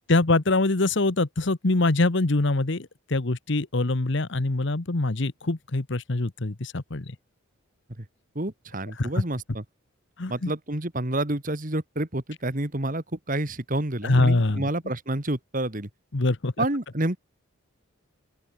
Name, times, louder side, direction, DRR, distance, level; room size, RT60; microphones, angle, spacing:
voice 1, 0.1-7.1 9.0-9.2 10.2-10.5 14.0-14.7 16.1-16.7, left 2 dB, 55° left, 1.1 m, -24 dB
voice 2, 8.4-9.6 10.3-15.9 16.6-17.2, right 1 dB, 40° right, 2.1 m, -29 dB
open air
head